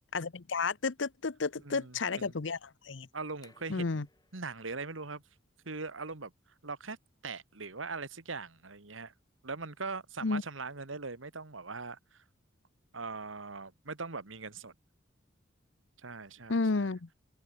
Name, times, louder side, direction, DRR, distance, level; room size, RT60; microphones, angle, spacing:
voice 1, 0.1-3.1 3.7-4.1 10.2-10.4 16.5-17.1, left 4 dB, 65° left, 0.8 m, -32 dB
voice 2, 1.6-2.3 3.1-4.1 4.3-5.2 5.7-6.3 6.6-7.0 7.2-9.1 9.4-12.2 12.9-14.7 16.0-16.9, right 4 dB, 80° right, 2.0 m, -41 dB
sound 1, 3.3-9.8, left 3 dB, 20° left, 6.5 m, -70 dB
head